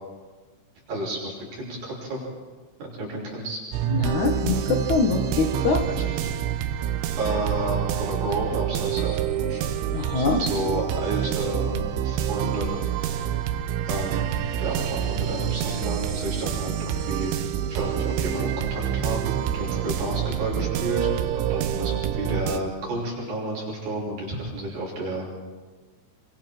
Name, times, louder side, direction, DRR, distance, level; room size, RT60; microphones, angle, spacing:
voice 1, 0.9-2.2 2.8-3.6 3.9-4.3 5.9-6.3 7.2-9.6 9.9-13.5 13.9-17.3 17.7-25.4, right 1 dB, 50° right, -4 dB, 7.7 m, -31 dB
sound 1, 3.7-22.6, right 10 dB, 85° right, 3.4 m, -27 dB
voice 2, 3.9-5.8 9.9-10.4, left 4 dB, 60° left, 3 dB, 2.2 m, -23 dB
29.5 x 24.0 x 4.5 m, 1.4 s
omnidirectional pair, 5.3 m